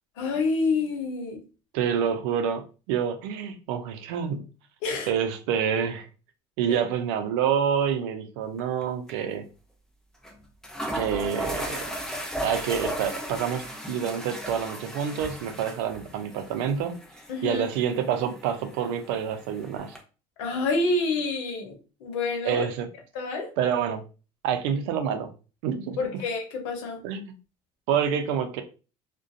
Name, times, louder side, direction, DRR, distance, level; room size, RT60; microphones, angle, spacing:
voice 1, 0.2-1.4 4.8-5.1 6.7-6.8 17.3-17.6 20.4-22.7 23.1-23.5 26.0-27.0, left 3 dB, 85° left, 3 dB, 0.8 m, -28 dB
voice 2, 1.7-4.5 5.1-6.1 6.6-9.4 10.9-11.8 12.4-16.9 17.4-20.0 22.4-22.9 23.6-24.0 24.4-25.3 25.6-26.1 27.0-27.3 27.9-28.6, right 8 dB, 85° right, 7 dB, 0.5 m, -27 dB
sound 1, 8.6-8.8 9.1-9.2 10.2-10.3 10.6-20.0, equal, 5° left, 0.6 m, -36 dB
2.4 x 2.2 x 2.5 m, 0.34 s
supercardioid pair, 95°, 15 cm